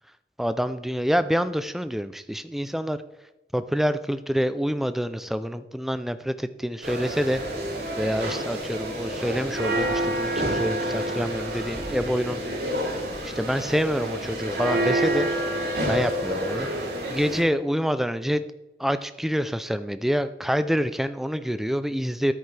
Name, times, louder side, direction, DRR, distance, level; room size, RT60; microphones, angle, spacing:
voice 1, 0.4-3.0 3.5-7.4 8.0-12.4 13.2-15.3 15.9-16.7 17.1-18.4 18.8-22.3, equal, ahead, 12 dB, 0.3 m, -27 dB
sound 1, 6.8-17.4, right 1 dB, 65° right, 3.1 m, -28 dB
10.5 x 8.6 x 3.3 m, 1.0 s
head